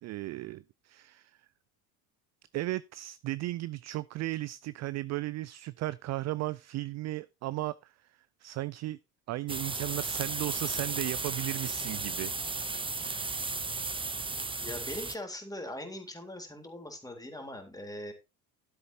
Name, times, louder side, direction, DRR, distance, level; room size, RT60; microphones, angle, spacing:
voice 1, 0.0-1.4 2.5-7.9 8.4-9.0 9.3-12.3, right 17 dB, 35° right, 0.4 m, -35 dB
sound 1, 9.5-15.2, right 3 dB, 10° right, 0.9 m, -34 dB
voice 2, 14.6-18.1, left 1 dB, 5° left, 3.6 m, -41 dB
13.5 x 7.9 x 2.8 m
hypercardioid pair, 70°, 48 cm